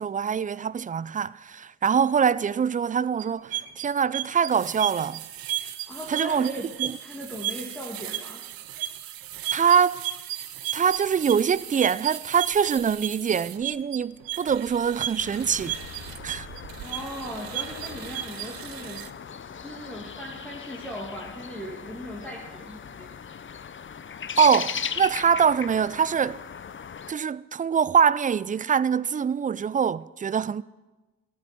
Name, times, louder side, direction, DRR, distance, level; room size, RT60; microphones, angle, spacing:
voice 1, 0.0-5.2 6.1-6.5 6.8-7.0 9.5-10.0 10.7-15.8 16.2-16.5 24.4-26.4 27.1-30.6, right 7 dB, 25° right, 0.3 m, -24 dB
sound 1, 3.2-19.1, right 12 dB, 70° right, 0.6 m, -35 dB
voice 2, 5.9-6.7 7.0-8.4 16.7-19.1 19.5-23.1, equal, 5° left, 2.3 m, -38 dB
sound 2, 15.2-27.1, left 7 dB, 35° left, 0.6 m, -38 dB
13.0 x 8.3 x 5.8 m
supercardioid pair, 45°, 36 cm